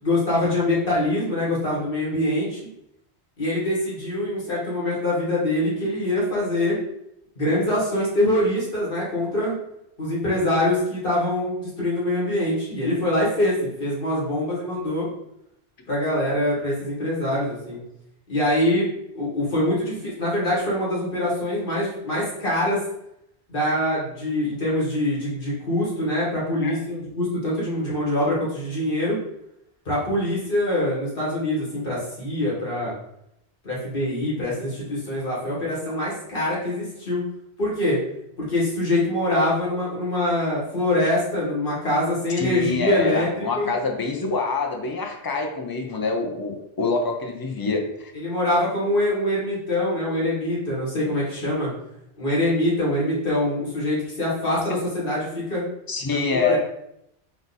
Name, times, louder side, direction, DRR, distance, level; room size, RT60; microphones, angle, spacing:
voice 1, 0.0-2.6 3.4-6.8 7.3-9.5 10.0-15.1 15.9-17.8 18.3-18.9 19.1-22.8 23.5-29.2 29.8-32.9 33.6-37.2 37.6-38.0 38.4-43.7 48.1-51.7 52.2-55.6 56.1-56.6, left 1 dB, 55° left, -6 dB, 1.7 m, -24 dB
voice 2, 42.4-48.1 55.9-56.6, left 3 dB, 35° left, 2 dB, 0.4 m, -25 dB
3.9 x 2.5 x 3.9 m, 0.78 s
omnidirectional pair, 1.1 m